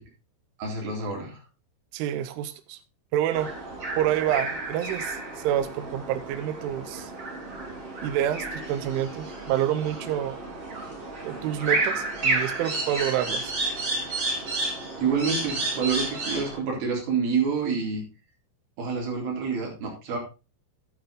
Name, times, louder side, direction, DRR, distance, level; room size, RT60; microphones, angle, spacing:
voice 1, 0.6-1.4 15.0-18.0 18.8-20.2, right 5 dB, 55° right, -1 dB, 5.2 m, -27 dB
voice 2, 1.9-2.8 3.1-3.5 4.0-5.2 5.4-7.1 8.0-10.4 11.2-13.5, right 11 dB, 85° right, 10 dB, 3.3 m, -28 dB
sound 1, 3.3-16.6, right 2 dB, 30° right, 4.9 m, -31 dB
11.0 x 9.2 x 3.8 m, 0.32 s
omnidirectional pair, 5.5 m